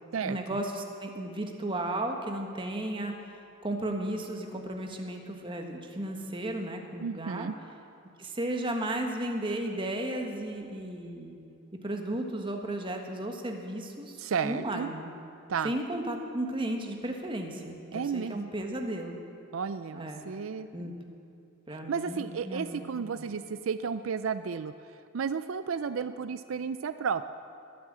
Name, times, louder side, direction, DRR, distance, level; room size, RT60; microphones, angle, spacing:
voice 1, 0.2-3.1 3.6-7.5 8.2-11.4 11.8-15.1 15.6-19.2 19.9-20.2 20.7-20.9 21.7-23.3, right 1 dB, 25° right, 3 dB, 1.5 m, -34 dB
voice 2, 7.0-7.6 14.2-14.9 15.5-15.7 17.9-18.4 19.5-21.0 21.7-24.7 25.1-27.2, right 6 dB, 75° right, 12 dB, 0.4 m, -33 dB
21.0 x 8.5 x 7.4 m, 2.6 s
head